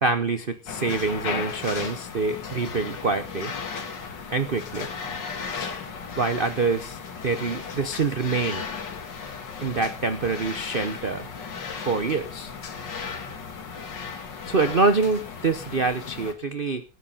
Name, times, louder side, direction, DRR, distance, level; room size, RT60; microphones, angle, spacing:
voice 1, 0.0-3.5 4.3-4.9 6.2-8.7 9.6-11.3 11.8-12.5 14.5-16.8, right 4 dB, 70° right, 10 dB, 0.5 m, -25 dB
sound 1, 0.7-16.3, left 5 dB, 55° left, 2.4 m, -35 dB
13.5 x 10.0 x 5.5 m, 0.35 s
omnidirectional pair, 2.3 m